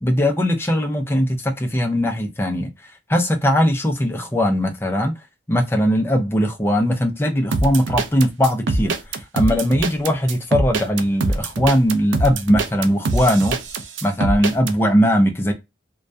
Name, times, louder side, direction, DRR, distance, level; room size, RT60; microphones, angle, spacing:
voice 1, 0.0-2.7 3.1-5.1 5.5-13.6 14.0-15.5, equal, 10° left, 0.4 m, -19 dB
sound 1, 7.5-14.7, right 3 dB, 85° right, 0.4 m, -23 dB
2.2 x 2.1 x 2.5 m
head